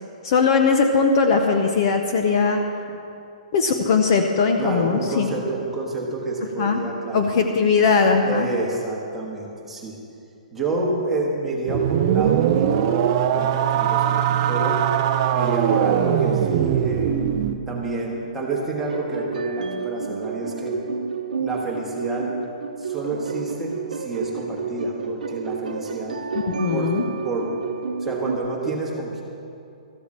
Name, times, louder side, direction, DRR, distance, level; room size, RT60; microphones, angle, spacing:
voice 1, 0.2-2.6 3.5-5.3 6.6-6.8 7.1-8.5 26.3-27.0, left 5 dB, 35° left, 4 dB, 0.7 m, -19 dB
voice 2, 4.6-7.2 8.2-10.0 10.5-14.8 15.3-17.1 17.7-20.8 21.4-22.3 22.8-26.2 26.7-27.0 27.2-27.5 28.0-29.2, right 2 dB, 5° right, -4 dB, 1.4 m, -28 dB
sound 1, 11.7-17.6, right 10 dB, 30° right, 0.5 m, -21 dB
sound 2, 18.8-28.4, right 5 dB, 85° right, 0.9 m, -31 dB
14.0 x 8.4 x 7.5 m, 2.6 s
hypercardioid pair, 175°, 4 cm